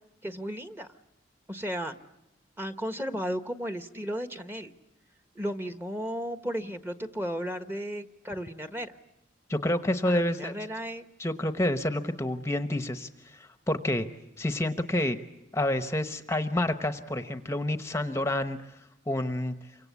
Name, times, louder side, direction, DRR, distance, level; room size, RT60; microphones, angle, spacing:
voice 1, 0.2-0.9 1.5-1.9 2.6-4.7 5.3-8.9 10.0-11.1, equal, 10° right, 9 dB, 1.3 m, -34 dB
voice 2, 9.5-10.5 11.2-14.1 14.4-15.2 15.5-18.6 19.1-19.5, left 1 dB, 15° left, 9 dB, 1.0 m, -28 dB
28.5 x 25.0 x 8.3 m, 0.88 s
head